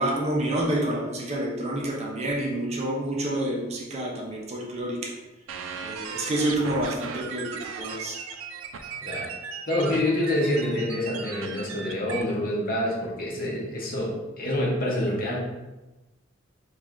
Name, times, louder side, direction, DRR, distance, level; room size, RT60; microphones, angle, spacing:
voice 1, 0.0-5.1 5.8-8.2, right 1 dB, 35° right, -1 dB, 0.6 m, -28 dB
sound 1, 5.5-12.2, right 6 dB, 80° right, 0.4 m, -37 dB
voice 2, 9.0-9.3 9.7-15.4, left 1 dB, 45° left, -3 dB, 0.8 m, -27 dB
3.2 x 2.4 x 3.6 m, 1.1 s
head